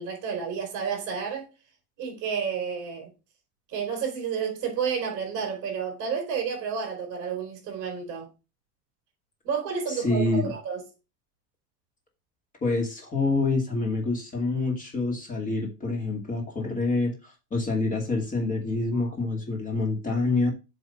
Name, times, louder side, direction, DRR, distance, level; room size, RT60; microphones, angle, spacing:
voice 1, 0.0-1.5 2.0-3.1 3.7-8.3 9.4-10.8 18.9-19.1, right 6 dB, 40° right, 4.2 m, -31 dB
voice 2, 9.9-10.5 12.6-20.5, left 3 dB, 15° left, 2.3 m, -27 dB
7.8 x 3.6 x 5.7 m
supercardioid pair, 145°, 47 cm